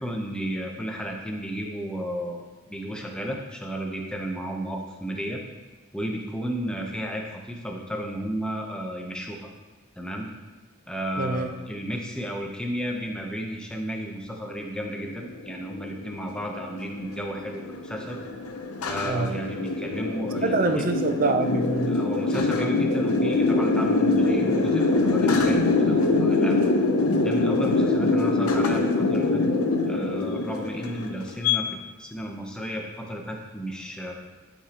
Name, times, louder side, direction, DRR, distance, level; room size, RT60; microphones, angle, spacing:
voice 1, 0.0-2.4 2.7-5.4 5.9-9.5 10.0-10.3 10.9-18.2 18.8-20.8 21.9-26.7 27.2-29.5 29.9-34.1, equal, 5° left, 0 dB, 0.8 m, -33 dB
voice 2, 11.2-11.5 19.0-19.3 20.4-22.0, right 3 dB, 40° right, 6 dB, 0.6 m, -25 dB
sound 1, 15.2-31.6, left 3 dB, 90° left, 0.7 m, -24 dB
11.5 x 5.0 x 3.0 m, 1.2 s
head